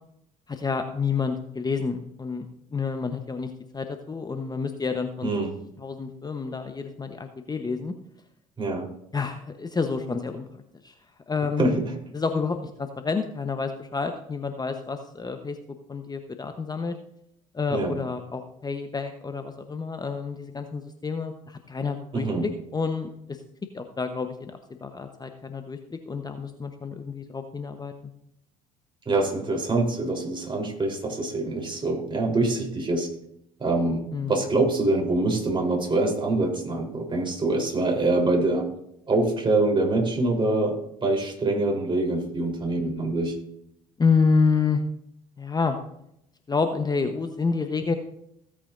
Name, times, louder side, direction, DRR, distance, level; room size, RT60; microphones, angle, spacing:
voice 1, 0.5-5.3 5.8-7.9 9.1-10.5 10.8-10.9 11.3-11.8 12.1-15.6 15.9-16.9 17.5-23.4 23.7-27.9 34.1-34.4 44.0-44.8 45.4-45.8 46.5-47.9, left 5 dB, 20° left, 7 dB, 1.0 m, -28 dB
voice 2, 5.2-5.6 8.6-8.9 11.6-11.9 17.7-17.9 22.1-22.5 29.1-33.1 33.6-38.7 39.1-43.4, right 2 dB, 25° right, 1 dB, 3.8 m, -25 dB
16.0 x 8.5 x 2.6 m, 0.76 s
hypercardioid pair, 60°, 18 cm